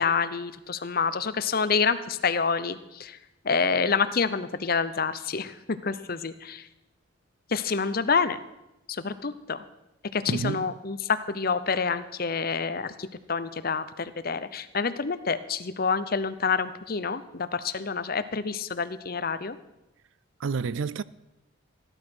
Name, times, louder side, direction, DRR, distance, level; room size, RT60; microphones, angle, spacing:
voice 1, 0.0-3.2 3.4-6.7 7.5-8.4 8.9-9.6 10.1-19.6, left 5 dB, 45° left, 0.7 m, -28 dB
voice 2, 10.3-10.7 20.4-21.0, right 5 dB, 70° right, 0.4 m, -29 dB
15.0 x 11.5 x 6.2 m
head